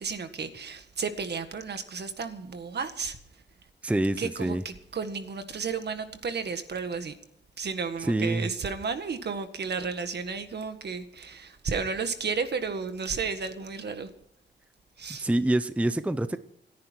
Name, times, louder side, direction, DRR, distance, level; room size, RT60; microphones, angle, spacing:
voice 1, 0.0-3.4 4.2-7.2 7.6-14.1 15.0-15.3, right 5 dB, 65° right, 9 dB, 1.7 m, -33 dB
voice 2, 3.8-4.6 8.0-8.5 15.2-16.4, right 1 dB, 5° right, 12 dB, 0.6 m, -26 dB
27.5 x 10.5 x 4.5 m, 0.70 s
wide cardioid pair, 170°, 19 cm